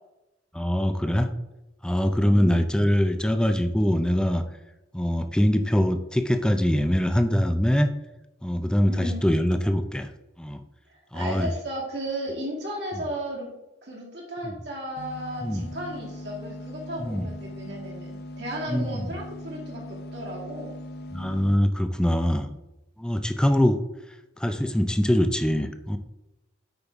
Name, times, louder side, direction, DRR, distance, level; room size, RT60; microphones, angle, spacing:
voice 1, 0.5-1.3 1.8-4.4 4.9-7.9 8.4-10.1 10.4-10.6 11.1-11.5 15.4-15.7 17.0-17.3 18.7-19.1 21.1-22.5 23.0-23.8 24.4-26.0, equal, 5° left, 8 dB, 0.4 m, -23 dB
voice 2, 2.2-2.6 8.9-9.3 10.9-13.5 13.8-20.7, equal, 65° right, -3 dB, 2.3 m, -35 dB
sound 1, 15.0-21.6, left 1 dB, 60° left, 0.6 m, -40 dB
7.7 x 5.3 x 3.6 m, 0.98 s
head